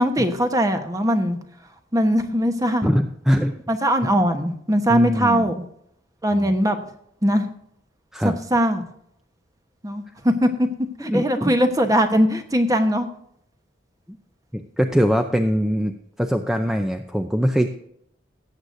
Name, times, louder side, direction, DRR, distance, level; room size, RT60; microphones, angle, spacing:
voice 1, 0.0-1.4 1.9-2.9 3.7-5.6 6.2-6.8 7.2-7.5 8.5-8.9 9.8-10.5 11.0-13.1, equal, 20° right, 7 dB, 1.1 m, -20 dB
voice 2, 2.8-3.5 4.9-5.5 6.3-6.5 8.1-8.4 11.0-11.5 14.5-15.9 16.2-17.7, equal, ahead, 5 dB, 0.5 m, -22 dB
18.0 x 8.0 x 2.6 m, 0.71 s
head